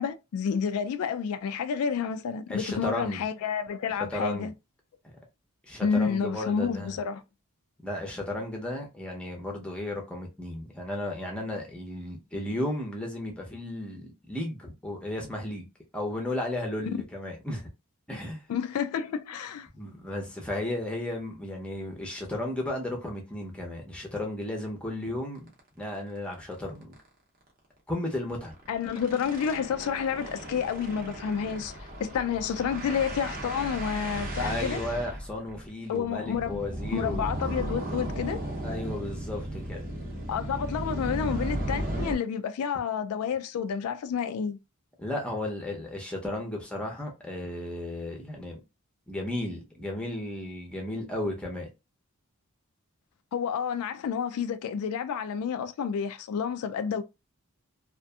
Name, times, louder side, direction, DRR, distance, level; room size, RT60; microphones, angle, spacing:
voice 1, 0.0-4.5 5.8-7.2 18.5-19.7 28.7-34.8 35.9-36.6 36.9-38.4 40.3-44.6 53.3-57.0, left 7 dB, 80° left, 0.3 m, -30 dB
voice 2, 2.5-3.2 4.0-4.5 5.6-7.0 7.8-15.7 15.9-17.7 18.1-18.4 19.7-25.5 25.8-26.9 27.9-28.5 34.4-37.2 38.6-39.9 45.0-48.6 49.1-51.7, left 1 dB, 5° left, 0.6 m, -34 dB
sound 1, 25.5-25.6 25.9-26.0 26.3-26.5 26.8-27.0 28.3-42.2, right 1 dB, 40° right, 0.7 m, -35 dB
2.7 x 2.5 x 2.3 m
head